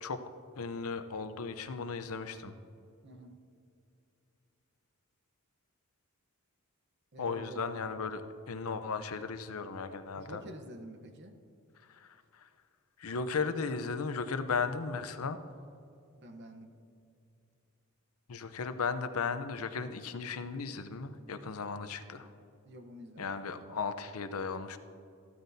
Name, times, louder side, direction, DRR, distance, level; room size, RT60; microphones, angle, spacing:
voice 1, 0.6-2.5 7.2-10.4 12.0-12.5 13.0-15.4 18.3-22.3 23.2-24.8, left 5 dB, 75° left, 10 dB, 0.7 m, -36 dB
voice 2, 3.0-3.4 7.1-7.7 10.1-11.4 16.1-16.7 22.6-23.5, right 1 dB, 50° right, 6 dB, 0.9 m, -48 dB
14.5 x 13.0 x 2.7 m, 2.5 s
head